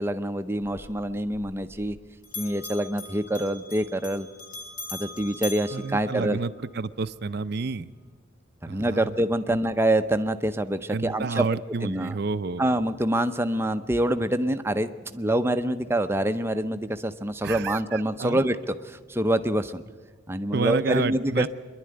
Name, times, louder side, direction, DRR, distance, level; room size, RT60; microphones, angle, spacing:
voice 1, 0.0-2.0 2.4-4.3 4.9-6.4 8.6-11.5 11.8-12.1 12.6-19.8 20.3-21.5, right 1 dB, 10° right, 9 dB, 0.6 m, -26 dB
Bell, 0.6-6.7, left 3 dB, 40° left, 3.0 m, -41 dB
voice 2, 5.7-7.9 8.7-9.1 9.5-9.6 10.9-12.6 17.4-18.4 20.5-21.5, right 4 dB, 50° right, 14 dB, 0.5 m, -30 dB
24.5 x 11.5 x 9.5 m, 1.5 s
head